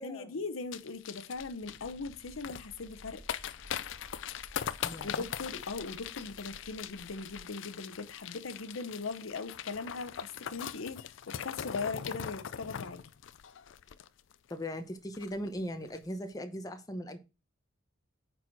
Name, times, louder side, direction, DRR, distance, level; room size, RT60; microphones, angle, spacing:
voice 1, 0.0-3.2 5.0-13.0, left 4 dB, 80° left, 0.8 m, -40 dB
sound 1, 0.7-14.5 14.8-14.9 15.1-15.5 15.8-16.0, left 9 dB, 65° left, 0.4 m, -41 dB
sound 2, 1.3-7.5, equal, 25° right, 1.1 m, -55 dB
voice 2, 4.8-5.3 14.5-17.2, equal, 20° left, 0.9 m, -39 dB
9.1 x 4.2 x 4.5 m
head